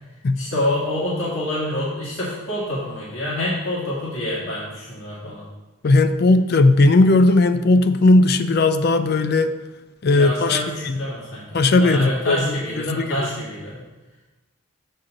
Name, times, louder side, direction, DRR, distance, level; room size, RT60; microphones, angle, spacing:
voice 1, 0.4-5.5 10.1-13.8, left 1 dB, 70° left, -6 dB, 1.8 m, -27 dB
voice 2, 5.8-9.5 10.0-11.0 11.5-13.3, left 2 dB, 50° left, 11 dB, 0.4 m, -17 dB
7.3 x 3.8 x 6.4 m, 1.1 s
head